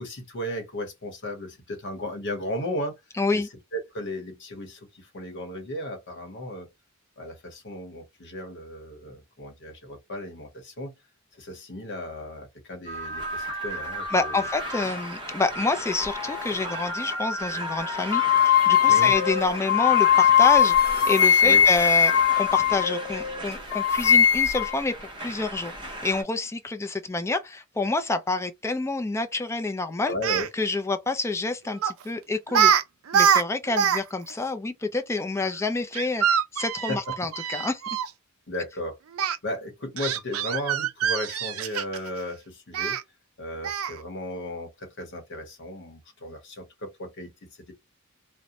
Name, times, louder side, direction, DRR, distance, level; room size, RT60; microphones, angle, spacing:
voice 1, 0.0-2.9 3.3-6.7 7.2-10.9 11.3-14.4 18.9-19.1 21.4-21.6 30.1-30.5 36.9-37.0 38.5-39.0 39.4-43.0 43.4-47.7, left 1 dB, 60° left, 0.9 m, -35 dB
voice 2, 3.2-3.5 14.1-30.1 30.5-32.7 33.1-37.8, left 3 dB, 15° left, 0.4 m, -28 dB
sound 1, 12.9-26.2, equal, 25° right, 0.8 m, -35 dB
sound 2, 18.1-23.4 23.7-24.8, left 8 dB, 75° left, 0.4 m, -20 dB
Speech, 30.1-30.5 31.8-32.0 32.5-32.8 33.1-34.0 34.3-34.4 35.9-38.1 39.2-39.4 40.0-42.1 42.7-43.0 43.6-44.0, right 8 dB, 70° right, 0.4 m, -24 dB
2.5 x 2.1 x 2.8 m
head